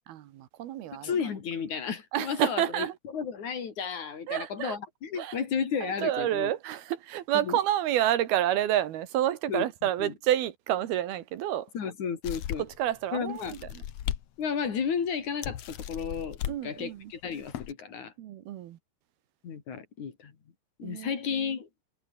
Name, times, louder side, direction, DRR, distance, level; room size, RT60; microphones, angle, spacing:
voice 1, 0.1-1.1 2.1-2.9 4.3-4.8 5.2-5.4 5.8-11.7 12.6-13.8 16.5-17.1 18.2-18.8 20.8-21.2, right 12 dB, 75° right, 3.2 m, -29 dB
voice 2, 0.9-2.9 3.1-6.5 7.4-7.6 9.5-9.6 10.0-10.1 11.7-12.6 13.1-13.6 14.4-18.1 19.4-20.3 20.8-21.7, left 6 dB, 50° left, 3.9 m, -33 dB
sound 1, 12.2-12.8 13.4-14.2 14.7-14.8 15.4-16.6 17.3-17.7, left 11 dB, 65° left, 1.5 m, -36 dB
omnidirectional pair, 4.6 m